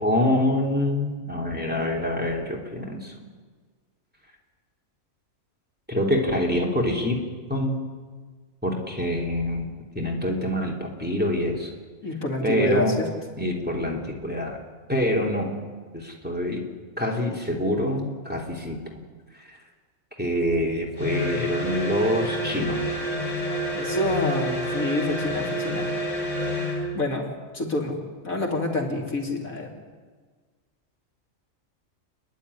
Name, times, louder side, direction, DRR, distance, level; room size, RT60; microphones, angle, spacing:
voice 1, 0.0-3.1 5.9-7.2 7.5-7.8 8.6-9.7 9.9-11.7 12.4-13.0 13.4-14.6 14.9-15.6 15.9-16.7 17.0-18.8 20.2-23.0, left 1 dB, 5° right, -1 dB, 3.0 m, -25 dB
voice 2, 12.0-13.1 23.7-25.9 26.9-27.3 27.5-28.0 28.2-29.7, left 1 dB, 85° left, 0 dB, 3.4 m, -27 dB
sound 1, 21.0-26.9, equal, 60° left, 5.0 m, -28 dB
28.5 x 11.0 x 9.9 m, 1.5 s
omnidirectional pair, 1.4 m